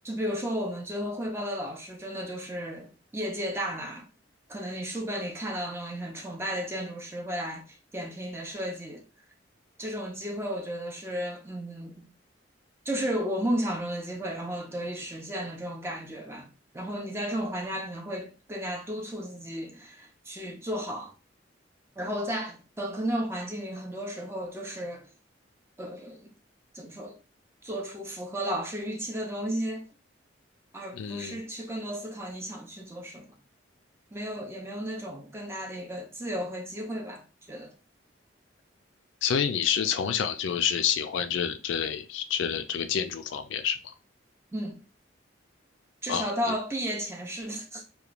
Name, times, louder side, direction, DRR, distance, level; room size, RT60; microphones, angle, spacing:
voice 1, 0.0-4.1 4.5-9.0 9.8-12.1 12.9-16.5 16.7-21.1 22.0-25.1 25.8-26.3 26.7-27.2 27.6-29.9 30.7-33.3 34.1-37.7 44.5-44.8 46.0-47.8, equal, 15° right, 0.4 m, -34 dB
voice 2, 30.9-31.4 39.2-43.9 46.1-46.3, left 8 dB, 75° left, 0.3 m, -28 dB
2.9 x 2.2 x 2.4 m
head